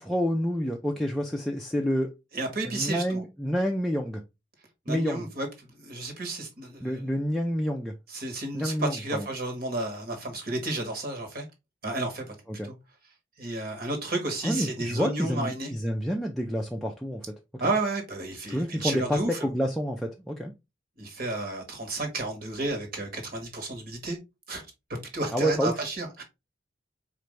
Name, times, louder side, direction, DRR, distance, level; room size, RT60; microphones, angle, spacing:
voice 1, 0.0-2.1 2.6-4.2 4.9-5.3 6.8-8.0 8.5-9.3 12.6-12.7 14.4-17.2 18.5-20.5 25.3-25.8, equal, ahead, 0.3 m, -28 dB
voice 2, 2.3-3.2 4.8-7.0 8.1-11.4 11.8-12.3 12.6-12.7 13.4-15.7 17.6-19.5 21.0-24.2 24.5-24.6 25.1-26.2, right 2 dB, 50° right, 1.3 m, -32 dB
4.4 x 2.5 x 3.1 m
head